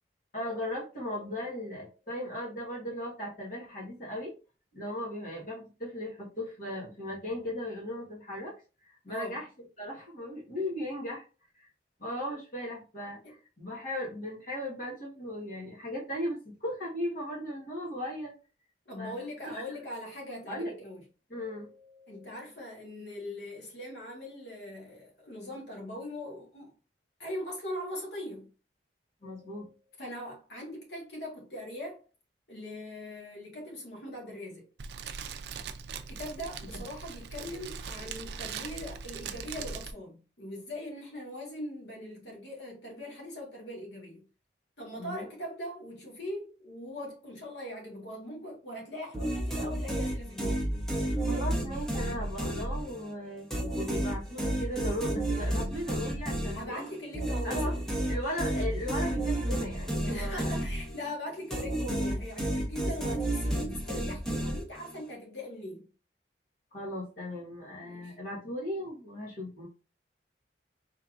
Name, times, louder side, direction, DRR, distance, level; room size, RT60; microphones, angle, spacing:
voice 1, 0.3-4.3 4.7-8.5 8.9-9.5 9.8-11.3 11.6-11.7 12.0-13.2 13.6-18.3 19.0-19.1 19.4-19.6 20.5-20.7 21.3-22.4 29.2-29.7 45.0-45.3 51.1-53.5 53.7-56.9 57.4-57.7 58.1-60.5 66.7-69.7, left 1 dB, 50° left, 1.4 m, -37 dB
voice 2, 18.8-21.0 22.1-26.7 27.2-28.5 30.0-32.0 32.5-34.6 36.1-44.2 44.8-50.7 56.5-57.8 60.1-65.9 67.8-68.1, left 1 dB, 70° left, 1.6 m, -41 dB
Fire, 34.8-39.9, right 6 dB, 70° right, 0.4 m, -40 dB
sound 1, 49.1-53.1 53.5-61.1 61.5-65.0, right 1 dB, 5° left, 0.8 m, -31 dB
4.8 x 3.4 x 2.5 m
head